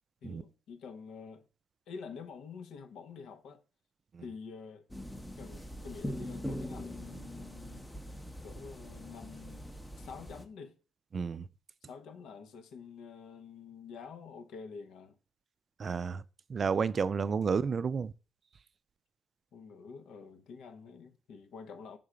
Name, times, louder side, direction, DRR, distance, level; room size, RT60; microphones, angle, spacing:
voice 1, 0.2-1.5 1.9-3.6 4.2-4.9 5.3-7.9 8.4-9.7 10.0-10.8 11.9-15.2 19.5-22.0, left 5 dB, 75° left, 0.7 m, -48 dB
sound 1, 4.9-10.5, equal, 10° left, 0.7 m, -42 dB
voice 2, 11.1-11.4 15.8-16.2 16.5-18.1, right 5 dB, 40° right, 0.3 m, -31 dB
5.6 x 3.7 x 4.9 m
cardioid pair, 105°, 0 cm